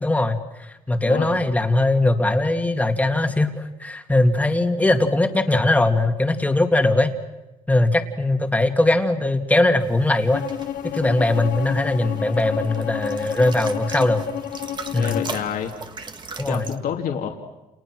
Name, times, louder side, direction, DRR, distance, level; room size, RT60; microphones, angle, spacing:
voice 1, 0.0-7.1 7.7-10.4 10.8-14.2 14.9-15.2 16.4-16.7, left 2 dB, 10° left, 5 dB, 2.3 m, -20 dB
sound 1, 9.8-16.8, right 4 dB, 30° right, 1.9 m, -39 dB
Bowed string instrument, 10.3-15.4, left 12 dB, 85° left, 1.2 m, -31 dB
voice 2, 14.9-15.7 16.5-17.3, left 8 dB, 70° left, 2 dB, 2.8 m, -28 dB
30.0 x 29.5 x 6.3 m, 1.0 s
cardioid pair, 135°, 15 cm